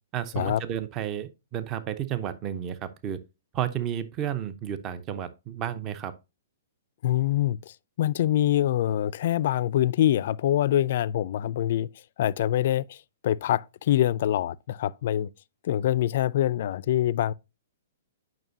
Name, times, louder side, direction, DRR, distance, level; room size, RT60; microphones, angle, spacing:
voice 1, 0.1-3.2 3.5-6.1, right 10 dB, 30° right, 0.7 m, -32 dB
voice 2, 7.0-11.9 12.2-13.0 13.2-15.3 15.6-17.3, left 12 dB, 55° left, 0.4 m, -25 dB
9.1 x 5.8 x 2.7 m
hypercardioid pair, 125°, 0 cm